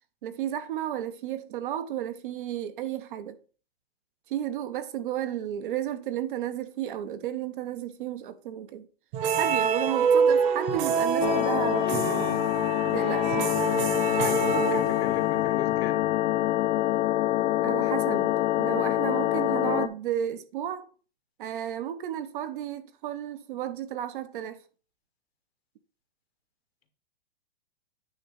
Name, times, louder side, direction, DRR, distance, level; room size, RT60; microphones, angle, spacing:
voice 1, 0.2-3.4 4.3-8.9 9.3-12.5 12.9-13.5 17.6-20.9 21.4-24.6, right 11 dB, 55° right, 1.0 m, -33 dB
sound 1, 9.1-15.4, right 6 dB, 40° right, 1.4 m, -26 dB
sound 2, 11.2-19.9, left 15 dB, 50° left, 0.6 m, -25 dB
voice 2, 14.2-16.0, left 7 dB, 80° left, 1.7 m, -37 dB
9.3 x 3.1 x 6.3 m
hypercardioid pair, 150°, 30 cm